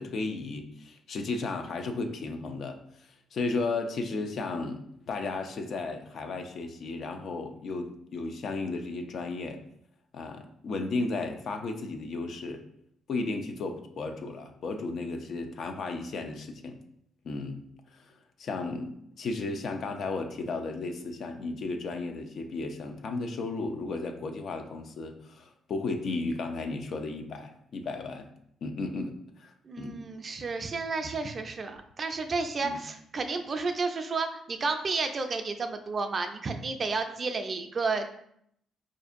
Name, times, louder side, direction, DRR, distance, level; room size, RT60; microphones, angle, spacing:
voice 1, 0.0-9.6 10.1-12.6 13.1-16.8 17.2-17.6 17.9-18.1 18.4-28.3 28.6-30.0 32.6-32.8, left 3 dB, 60° left, 6 dB, 0.4 m, -34 dB
voice 2, 29.6-38.1, right 4 dB, 40° right, 7 dB, 0.4 m, -31 dB
4.3 x 2.6 x 2.5 m, 0.70 s
cardioid pair, 90°, 0 cm